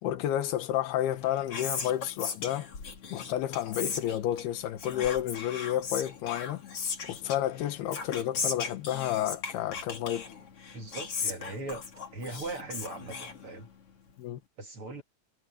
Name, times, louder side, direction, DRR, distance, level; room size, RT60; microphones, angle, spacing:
voice 1, 0.0-2.7 3.1-6.6 7.1-10.3 14.2-14.4, left 12 dB, 85° left, 3.2 m, -31 dB
Whispering, 1.0-13.9, left 5 dB, 40° left, 3.7 m, -38 dB
voice 2, 10.7-11.8 12.1-13.7 14.6-15.0, right 2 dB, 45° right, 2.2 m, -39 dB
omnidirectional pair, 4.5 m